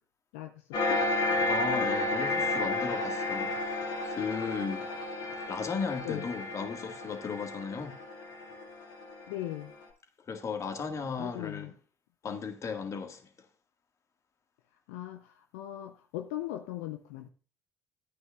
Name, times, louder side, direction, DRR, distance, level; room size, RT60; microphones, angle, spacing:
voice 1, 0.3-1.0 6.0-6.3 9.3-9.7 11.2-11.7 14.9-17.3, left 14 dB, 75° left, 0.6 m, -39 dB
sound 1, 0.7-9.7, left 2 dB, 60° left, 2.4 m, -32 dB
voice 2, 1.4-4.9 5.5-8.0 10.3-11.7 12.2-13.2, left 5 dB, 40° left, 1.9 m, -36 dB
12.5 x 9.2 x 2.5 m
hypercardioid pair, 55°, 8 cm